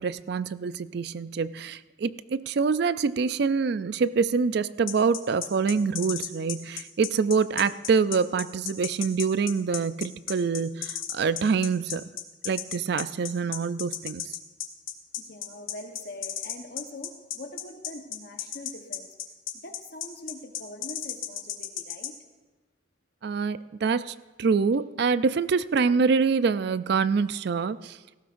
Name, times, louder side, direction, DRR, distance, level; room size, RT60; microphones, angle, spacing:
voice 1, 0.0-12.1 12.4-14.3 23.2-28.0, right 5 dB, 55° right, 15 dB, 0.4 m, -25 dB
sound 1, 4.9-22.1, left 10 dB, 90° left, 1.1 m, -34 dB
voice 2, 15.2-19.1 19.6-22.2, left 2 dB, 50° left, 4 dB, 1.1 m, -43 dB
17.5 x 15.0 x 2.6 m, 1.2 s
head